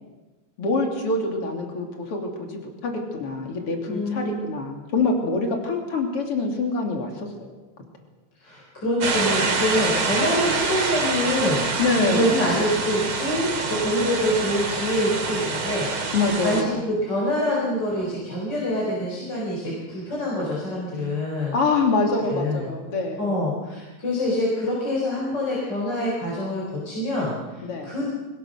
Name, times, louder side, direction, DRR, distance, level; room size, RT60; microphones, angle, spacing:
voice 1, 0.6-7.5 11.8-12.3 16.1-16.8 21.5-23.3 27.6-27.9, left 3 dB, 50° left, 2 dB, 3.8 m, -25 dB
voice 2, 3.9-4.4 8.4-16.1 16.4-21.6 22.2-22.7 23.2-28.1, left 1 dB, 35° left, -4 dB, 5.0 m, -26 dB
sound 1, 9.0-16.6, right 4 dB, 50° right, 2.9 m, -26 dB
23.0 x 19.5 x 6.4 m, 1.2 s
omnidirectional pair, 3.3 m